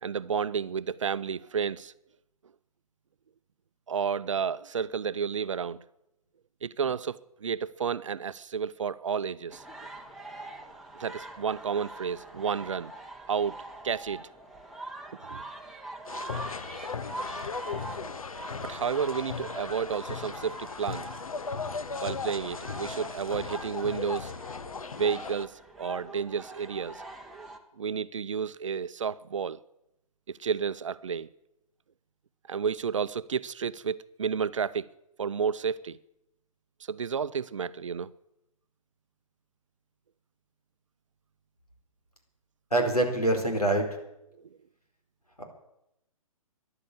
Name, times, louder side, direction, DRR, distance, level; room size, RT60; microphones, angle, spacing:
voice 1, 0.0-1.9 3.9-5.8 6.6-9.6 11.0-12.9 13.3-14.2 15.2-15.4 18.6-21.1 22.0-24.3 25.0-27.0 27.8-29.6 30.3-31.3 32.5-34.9 35.2-36.0 36.9-38.1 44.3-44.4, right 6 dB, 55° right, 0.6 m, -31 dB
sound 1, 9.5-27.6, right 2 dB, ahead, 1.3 m, -44 dB
sound 2, 16.1-25.5, left 5 dB, 70° left, 0.8 m, -37 dB
voice 2, 42.7-43.9 45.4-45.5, right 1 dB, 90° left, 4.3 m, -25 dB
14.5 x 11.0 x 8.5 m
figure-of-eight pair, 130°, 19 cm